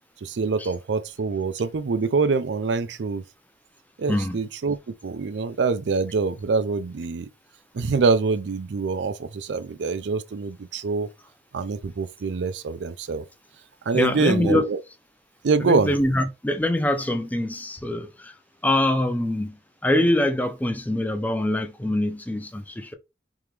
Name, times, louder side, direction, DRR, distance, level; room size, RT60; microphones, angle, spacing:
voice 1, 0.2-3.2 4.0-7.3 7.7-11.1 11.5-13.2 13.9-14.8 15.4-15.9, right 4 dB, 85° right, 0.5 m, -25 dB
voice 2, 13.9-14.7 15.6-18.3 18.6-19.6 19.8-22.9, left 1 dB, 10° left, 0.4 m, -24 dB
3.6 x 2.9 x 3.2 m
head